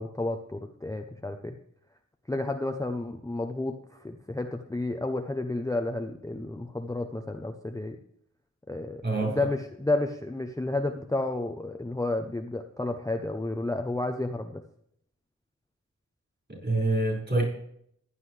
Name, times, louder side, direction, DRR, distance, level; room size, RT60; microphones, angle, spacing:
voice 1, 0.0-1.6 2.3-8.0 8.7-14.6, left 2 dB, 10° left, 5 dB, 0.7 m, -31 dB
voice 2, 9.0-9.4 16.5-17.4, right 2 dB, 35° right, -2 dB, 5.2 m, -26 dB
15.0 x 9.8 x 3.3 m, 0.69 s
wide cardioid pair, 95°, 30 cm